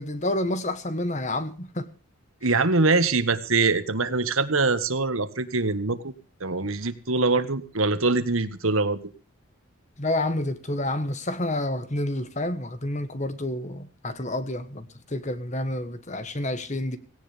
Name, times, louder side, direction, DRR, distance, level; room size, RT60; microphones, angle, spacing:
voice 1, 0.0-1.9 10.0-17.0, left 1 dB, 35° left, 1.3 m, -29 dB
voice 2, 2.4-6.1 6.4-9.0, right 3 dB, 75° right, 1.5 m, -23 dB
17.5 x 17.5 x 3.5 m
head